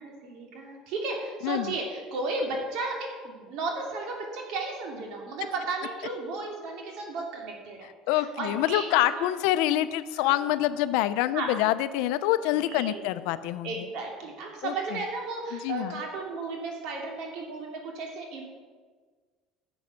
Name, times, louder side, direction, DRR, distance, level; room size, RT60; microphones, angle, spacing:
voice 1, 0.0-9.3 10.3-10.5 11.3-11.5 12.6-13.1 13.6-18.5, right 3 dB, 65° right, 0 dB, 2.8 m, -34 dB
voice 2, 1.4-1.7 8.1-13.9 14.6-14.7 15.5-16.0, left 14 dB, 80° left, 13 dB, 0.6 m, -26 dB
11.0 x 7.1 x 6.4 m, 1.5 s
cardioid pair, 125°, 0 cm